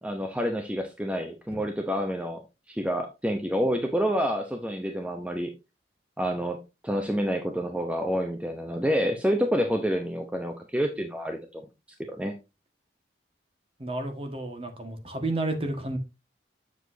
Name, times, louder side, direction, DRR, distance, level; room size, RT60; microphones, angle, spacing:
voice 1, 0.0-2.4 2.7-5.5 6.2-11.6 12.1-12.3, equal, 5° right, 0.7 m, -28 dB
voice 2, 13.8-16.0, right 2 dB, 30° right, 1.6 m, -31 dB
8.1 x 7.1 x 2.7 m
head